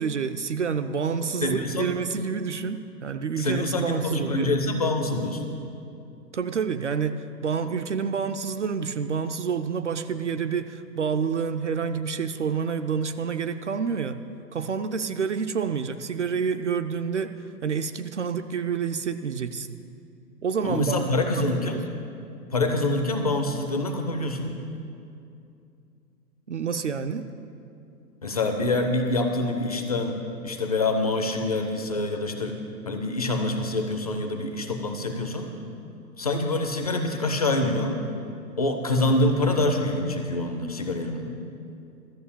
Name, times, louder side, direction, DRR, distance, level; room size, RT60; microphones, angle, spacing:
voice 1, 0.0-4.5 6.3-14.2 14.5-19.8 20.4-21.1 21.4-21.8 26.5-27.3, right 6 dB, 50° right, 8 dB, 0.4 m, -28 dB
voice 2, 1.4-1.9 3.4-5.4 20.6-21.8 22.5-24.6 28.2-30.2 30.4-35.5 36.2-38.0 38.6-41.3, left 2 dB, 25° left, 5 dB, 0.5 m, -26 dB
13.0 x 6.7 x 8.6 m, 2.6 s
figure-of-eight pair, 125°, 49 cm